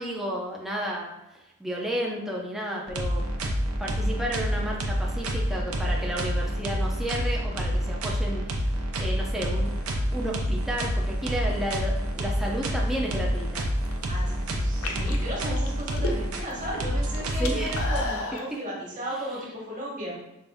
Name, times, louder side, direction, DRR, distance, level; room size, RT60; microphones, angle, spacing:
voice 1, 0.0-3.3 3.8-13.7 14.9-15.2 17.4-17.8, equal, ahead, -3 dB, 0.5 m, -32 dB
sound 1, 2.9-18.0, equal, 75° right, 0.7 m, -28 dB
sound 2, 13.6-14.1 14.7-16.5 16.8-18.5, left 2 dB, 70° left, 0.5 m, -33 dB
voice 2, 14.1-20.2, equal, 35° right, -4 dB, 1.2 m, -35 dB
5.4 x 2.5 x 3.4 m, 0.90 s
head